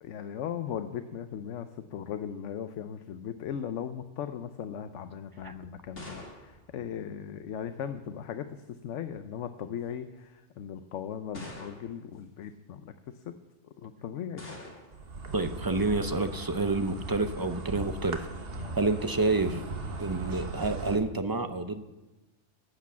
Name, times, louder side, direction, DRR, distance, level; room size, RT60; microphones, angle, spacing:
voice 1, 0.0-13.4 13.6-14.4 18.5-18.8, left 8 dB, 85° left, 9 dB, 1.0 m, -38 dB
sound 1, 5.4-7.7 8.7-9.2 10.0-10.1 11.3-12.1 14.4-15.1, left 1 dB, 55° left, 2.5 m, -46 dB
Insect, 14.9-21.0, right 3 dB, 55° right, 1.3 m, -38 dB
voice 2, 15.3-18.3 18.8-19.6 20.0-21.8, right 3 dB, 25° right, 8 dB, 0.5 m, -28 dB
11.5 x 8.3 x 7.4 m, 1.1 s
omnidirectional pair, 1.2 m